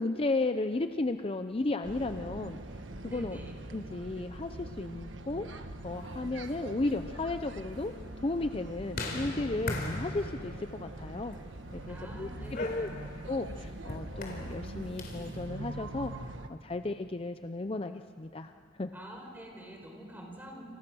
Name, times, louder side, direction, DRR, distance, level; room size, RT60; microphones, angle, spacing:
voice 1, 0.0-2.6 3.0-3.4 3.7-7.9 8.2-11.4 11.7-12.9 13.3-18.5 18.8-18.9, left 2 dB, 30° left, 8 dB, 0.6 m, -34 dB
sound 1, 1.8-16.5, right 1 dB, 80° right, 1.4 m, -43 dB
voice 2, 3.0-3.5 11.9-12.9 18.9-20.6, equal, 10° right, 1 dB, 4.8 m, -46 dB
sound 2, 6.3-15.4, left 2 dB, 55° left, 4.3 m, -42 dB
29.0 x 27.5 x 6.2 m, 2.3 s
head